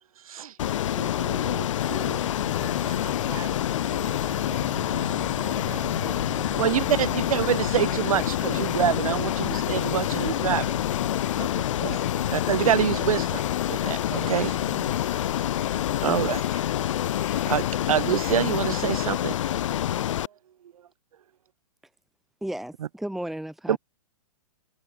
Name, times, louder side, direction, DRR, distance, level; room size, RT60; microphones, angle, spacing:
voice 1, 0.2-0.6 0.9-2.2 6.6-10.6 11.8-11.9 12.3-13.4 13.7-14.5 16.0-16.6 17.2-19.3 23.7-23.8, right 10 dB, 80° right, 0.9 m, -26 dB
Ocean, 0.6-20.3, left 11 dB, 60° left, 1.0 m, -27 dB
sound 1, 1.8-19.1, left 31 dB, 30° left, 4.0 m, -43 dB
voice 2, 2.0-13.4 14.1-15.0, right 11 dB, 15° right, 6.2 m, -43 dB
voice 3, 22.4-23.8, right 1 dB, ahead, 1.5 m, -34 dB
hypercardioid pair, 165°, 18 cm